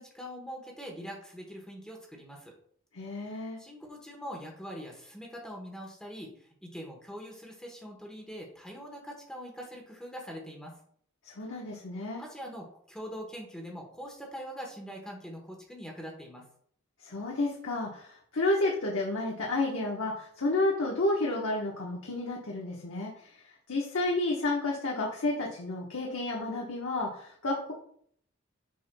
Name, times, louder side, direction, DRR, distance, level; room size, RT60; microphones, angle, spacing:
voice 1, 0.0-2.5 3.2-3.3 3.6-10.8 12.2-16.5, equal, 5° left, 0 dB, 1.1 m, -43 dB
voice 2, 2.9-3.6 11.2-12.2 17.0-27.7, left 2 dB, 75° left, -2 dB, 1.1 m, -31 dB
7.6 x 5.6 x 2.2 m, 0.62 s
head